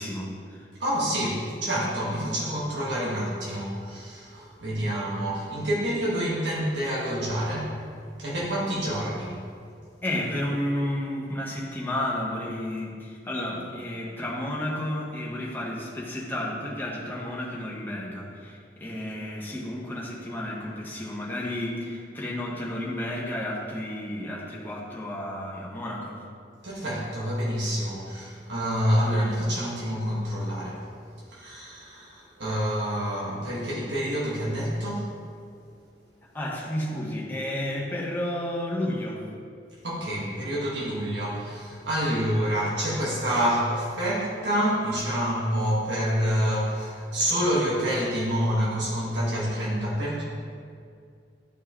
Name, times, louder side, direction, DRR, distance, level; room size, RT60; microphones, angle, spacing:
voice 1, 0.0-0.7 8.2-8.3 10.0-26.2 36.3-39.3, left 1 dB, 10° left, -4 dB, 1.1 m, -32 dB
voice 2, 0.8-7.8 8.2-9.4 26.6-30.8 31.3-35.1 39.8-50.2, equal, 80° right, -7 dB, 1.6 m, -27 dB
12.0 x 4.5 x 3.0 m, 2.2 s
head